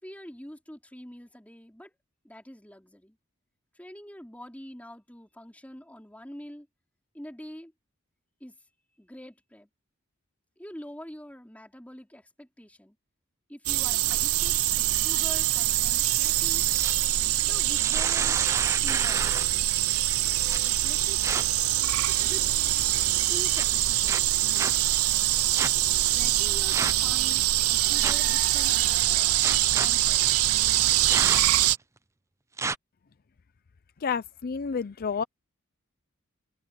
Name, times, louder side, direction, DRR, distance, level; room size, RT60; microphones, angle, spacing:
voice 1, 0.0-1.9 2.2-3.2 3.8-6.7 7.1-7.7 8.4-8.5 9.0-9.7 10.6-13.0 13.5-16.7 17.5-18.4 18.8-19.3 20.5-21.2 22.2-22.5 23.3-24.8 25.9-29.3 29.7-30.6, equal, 5° left, 3.9 m, -45 dB
sound 1, 13.7-31.8, right 15 dB, 90° right, 0.6 m, -24 dB
sound 2, 16.5-17.0 17.6-19.6 20.5-20.6 21.2-21.4 22.1-22.5 23.5-23.6 24.0-24.7 25.6-25.7 26.7-27.1 28.0-28.3 29.4-29.9 31.1-31.6 32.6-32.7, right 4 dB, 15° right, 0.4 m, -31 dB
voice 2, 34.0-35.2, left 6 dB, 45° left, 0.5 m, -30 dB
open air
head